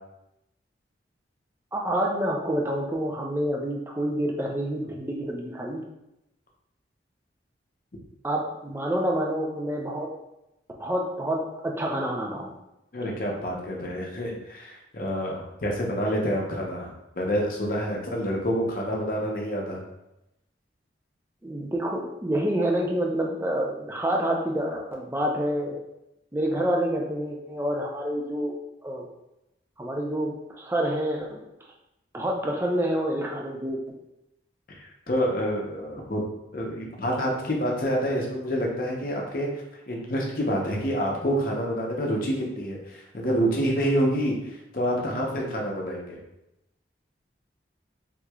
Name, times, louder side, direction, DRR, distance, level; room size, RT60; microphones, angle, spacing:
voice 1, 1.7-5.8 8.2-10.1 10.8-12.6 21.4-25.8 26.3-28.5 28.8-29.1 29.8-31.4 32.1-33.8, right 1 dB, 15° right, -1 dB, 0.4 m, -28 dB
voice 2, 12.9-19.8 34.7-36.2 36.5-39.5 39.9-46.2, equal, 50° left, -1 dB, 0.7 m, -28 dB
3.6 x 3.0 x 2.3 m, 0.89 s
head